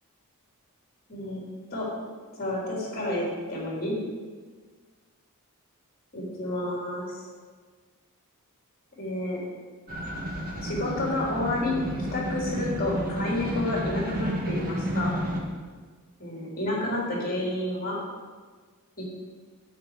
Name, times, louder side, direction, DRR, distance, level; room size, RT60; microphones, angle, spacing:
voice 1, 1.1-1.4 1.7-1.9 2.4-3.9 6.1-7.2 9.0-9.4 10.6-11.7 12.1-15.1 16.2-18.0 19.0-19.1, left 1 dB, 45° left, -4 dB, 3.5 m, -30 dB
sound 1, 9.9-15.4, equal, 40° right, 1.5 m, -31 dB
9.3 x 8.1 x 4.9 m, 1.5 s
head